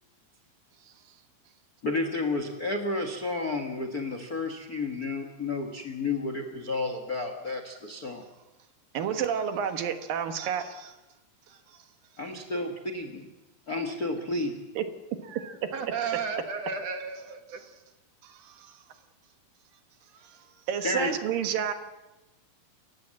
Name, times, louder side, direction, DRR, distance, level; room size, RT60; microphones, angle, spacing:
voice 1, 1.8-8.3 12.2-13.3 13.7-14.5 20.8-21.1, left 2 dB, 50° left, 1.1 m, -31 dB
voice 2, 8.9-11.0 11.5-11.8 14.8-14.9 15.6-15.7 17.5-17.7 18.2-18.8 20.2-21.7, right 8 dB, 75° right, 3.0 m, -31 dB
voice 3, 15.3-17.6, right 5 dB, 55° right, 2.3 m, -34 dB
28.5 x 15.0 x 7.6 m
omnidirectional pair, 4.2 m